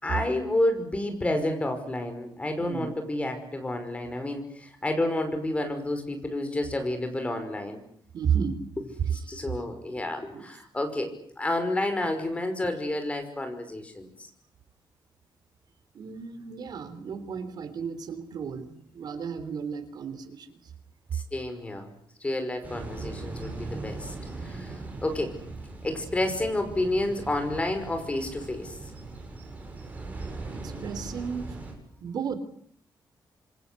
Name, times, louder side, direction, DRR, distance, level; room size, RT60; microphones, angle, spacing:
voice 1, 0.0-7.8 9.1-11.1 11.4-14.1 21.1-21.9 22.2-24.2 24.4-24.7 25.0-25.3 25.8-28.7, left 1 dB, 15° left, 7 dB, 5.5 m, -30 dB
voice 2, 2.6-2.9 8.1-8.6 9.3-9.4 10.3-10.5 15.9-20.7 30.5-31.5 32.0-32.4, right 7 dB, 65° right, 11 dB, 3.5 m, -33 dB
sound 1, 22.6-31.7, right 3 dB, 20° right, 7.5 m, -39 dB
27.5 x 24.0 x 8.4 m, 0.66 s
wide cardioid pair, 165°, 8 cm